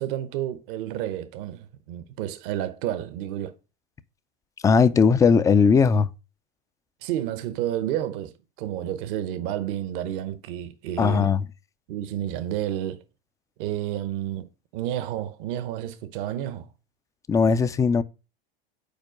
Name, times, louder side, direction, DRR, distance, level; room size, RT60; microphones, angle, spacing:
voice 1, 0.0-3.5 7.0-8.3 8.6-11.3 11.9-13.0 13.6-16.7, right 12 dB, 60° right, 0.8 m, -30 dB
voice 2, 4.6-6.1 11.0-11.4 17.3-18.0, left 5 dB, 10° left, 0.3 m, -18 dB
5.3 x 4.4 x 4.9 m
hypercardioid pair, 100°, 29 cm